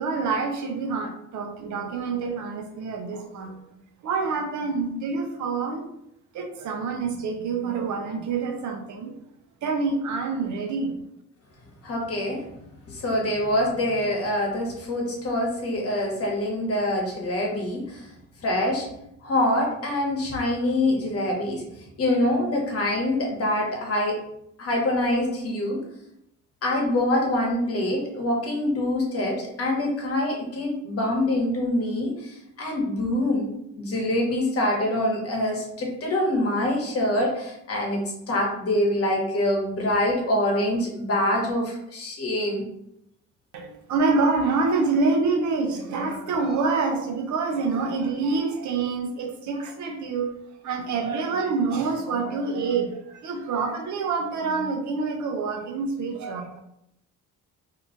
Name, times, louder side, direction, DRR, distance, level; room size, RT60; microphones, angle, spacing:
voice 1, 0.0-3.6 4.0-5.9 6.3-9.1 9.6-10.9 43.5-50.3 50.6-56.6, right 4 dB, 70° right, 4 dB, 0.7 m, -26 dB
voice 2, 11.8-12.4 12.9-18.1 18.4-18.9 19.2-21.6 22.0-24.3 24.6-25.8 26.6-42.6, left 1 dB, 50° left, -1 dB, 1.1 m, -25 dB
2.8 x 2.4 x 3.8 m, 0.79 s
cardioid pair, 90°, 30 cm